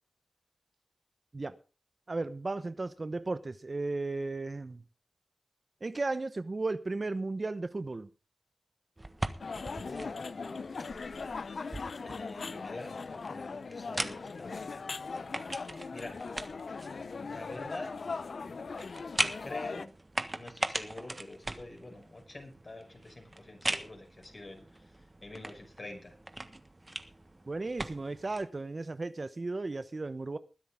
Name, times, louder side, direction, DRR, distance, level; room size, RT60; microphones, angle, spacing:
voice 1, 2.1-4.8 5.8-8.1 27.5-30.4, right 3 dB, 45° right, 0.9 m, -35 dB
sound 1, 9.0-28.5, right 2 dB, 30° right, 1.4 m, -41 dB
sound 2, 9.4-19.9, left 4 dB, 75° left, 0.6 m, -40 dB
voice 2, 9.8-10.6 12.0-14.5 15.9-16.2 17.3-17.9 19.4-19.9 20.3-24.6 25.2-26.1, left 2 dB, 45° left, 5.8 m, -45 dB
20.5 x 10.5 x 3.6 m
cardioid pair, 55°, 0 cm